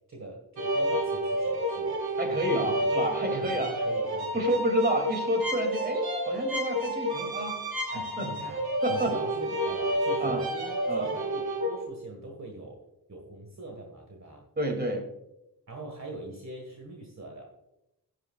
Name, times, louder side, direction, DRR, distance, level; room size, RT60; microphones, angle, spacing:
voice 1, 0.1-2.7 3.3-4.6 7.9-8.6 8.9-12.8 13.1-14.4 15.7-17.5, right 2 dB, 45° right, 1 dB, 1.8 m, -42 dB
sound 1, 0.6-11.8, equal, 65° right, 2.4 m, -30 dB
voice 2, 2.2-3.7 4.3-7.6 7.9-8.3 8.8-9.1 10.2-10.4 10.9-11.1 14.6-15.1, right 1 dB, 25° right, 3 dB, 2.7 m, -29 dB
11.5 x 11.0 x 2.4 m, 0.88 s
wide cardioid pair, 75°, 39 cm